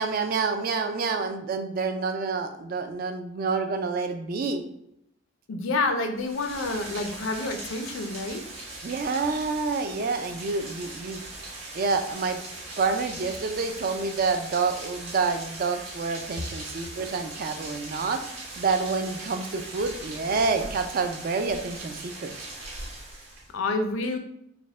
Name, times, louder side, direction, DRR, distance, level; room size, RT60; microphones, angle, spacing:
voice 1, 0.0-4.6 8.8-11.2 11.7-12.4 12.8-22.4, right 4 dB, 45° right, 7 dB, 0.3 m, -28 dB
voice 2, 5.5-8.4 23.5-24.2, left 3 dB, 70° left, 6 dB, 0.5 m, -28 dB
Rain, 6.1-23.5, right 2 dB, 85° right, 1.5 m, -40 dB
4.2 x 2.1 x 3.4 m, 0.78 s
head